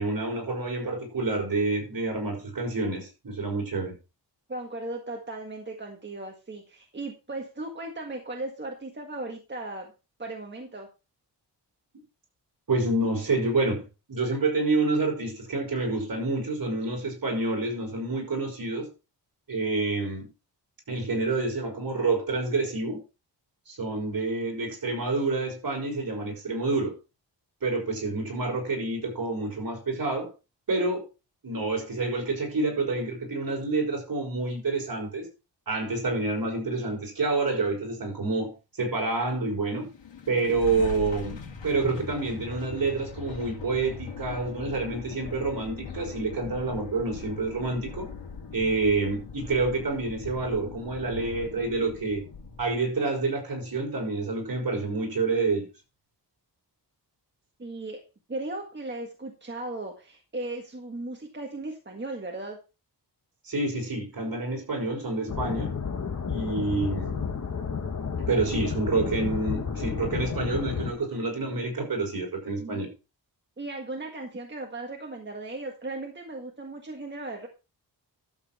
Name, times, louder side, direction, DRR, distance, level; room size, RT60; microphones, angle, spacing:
voice 1, 0.0-3.9 12.7-13.8 14.1-18.9 19.5-20.3 20.9-23.0 23.7-26.9 27.6-30.3 30.7-31.0 31.4-35.3 35.7-38.5 38.8-39.9 40.3-41.4 41.6-48.1 48.5-52.2 52.6-55.7 63.5-65.7 66.3-67.3 68.3-72.9, right 3 dB, 55° right, 5.7 m, -28 dB
voice 2, 4.5-9.9 10.2-10.9 57.6-58.0 58.3-62.6 72.6-72.8 73.6-77.5, right 2 dB, 25° right, 1.7 m, -37 dB
sound 1, 39.8-53.0, left 5 dB, 85° left, 2.8 m, -40 dB
sound 2, 65.3-70.9, left 6 dB, 40° left, 1.6 m, -31 dB
12.5 x 7.8 x 4.3 m
wide cardioid pair, 155°, 43 cm